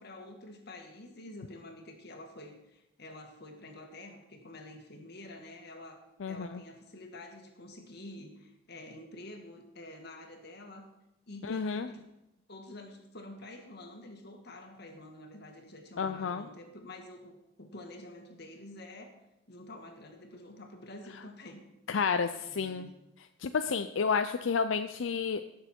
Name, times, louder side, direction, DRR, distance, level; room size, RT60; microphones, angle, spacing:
voice 1, 0.0-10.9 11.3-12.0 12.5-19.2 19.5-21.6 21.9-22.0 22.3-22.9, left 1 dB, 55° left, 4 dB, 1.8 m, -48 dB
voice 2, 6.2-6.6 11.4-11.9 16.0-16.5 21.9-22.9 23.4-25.4, left 5 dB, 90° left, 8 dB, 0.5 m, -31 dB
17.0 x 6.7 x 4.5 m, 0.91 s
head